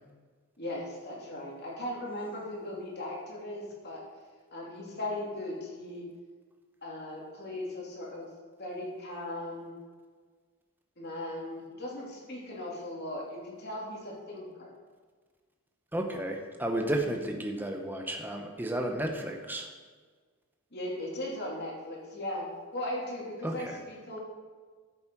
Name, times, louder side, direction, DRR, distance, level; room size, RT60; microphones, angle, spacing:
voice 1, 0.6-4.0 4.5-6.0 6.8-8.3 8.6-9.7 11.0-14.7 20.7-22.5 22.7-24.2, left 1 dB, 45° left, -3 dB, 2.8 m, -38 dB
voice 2, 15.9-19.7 23.4-23.8, right 1 dB, 10° right, 3 dB, 0.9 m, -32 dB
13.5 x 7.3 x 4.7 m, 1.5 s
head